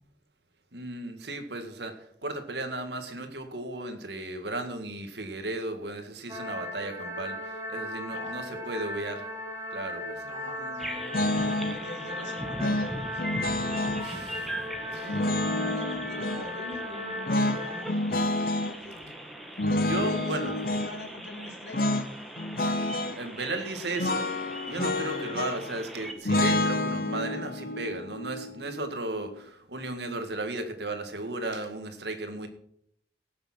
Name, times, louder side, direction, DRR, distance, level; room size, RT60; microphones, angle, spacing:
voice 1, 0.7-9.3 9.7-10.2 14.0-14.5 14.9-15.1 19.8-20.5 23.2-24.3 24.6-32.5, right 2 dB, 75° right, 7 dB, 2.0 m, -35 dB
sound 1, 6.3-17.8, left 1 dB, 20° right, 2.1 m, -37 dB
voice 2, 8.1-8.8 10.2-13.2 14.9-17.9 18.8-19.2 19.9-22.0, left 2 dB, 85° left, 1 dB, 3.3 m, -43 dB
sound 2, 10.8-26.1, equal, ahead, 1.5 m, -41 dB
sound 3, 11.1-11.8 12.6-14.1 15.1-16.5 17.3-18.8 19.6-20.9 21.7-22.1 22.4-23.2 24.0-25.8 26.3-29.3, left 2 dB, 55° left, 1.0 m, -29 dB
17.5 x 7.0 x 6.2 m, 0.70 s
head